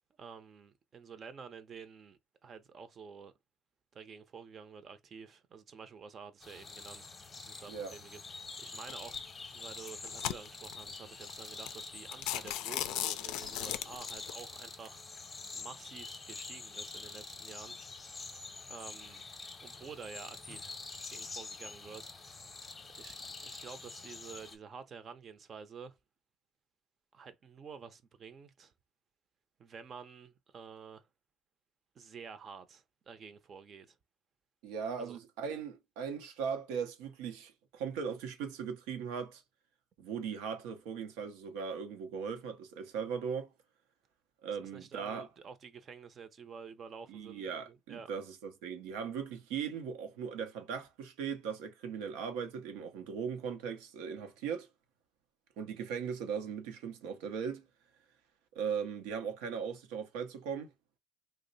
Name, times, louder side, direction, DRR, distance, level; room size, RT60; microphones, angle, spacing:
voice 1, 0.2-3.3 3.9-7.1 7.4-9.2 9.5-17.7 18.7-19.2 19.6-20.8 21.1-22.5 22.9-26.0 27.1-28.7 29.6-31.1 31.9-34.0 35.0-35.2 44.7-48.1, right 6 dB, 45° right, 0.6 m, -50 dB
sound 1, 6.4-24.6, left 4 dB, 25° left, 0.8 m, -46 dB
sound 2, 8.9-9.2 9.8-10.8 11.3-11.4 11.7-11.8 12.1-14.3, left 13 dB, 80° left, 0.3 m, -36 dB
voice 2, 34.6-39.4 40.0-43.5 44.4-45.3 47.1-54.7 55.6-57.7 58.5-60.7, right 6 dB, 85° right, 0.7 m, -38 dB
2.9 x 2.1 x 3.9 m
supercardioid pair, 90°, 0 cm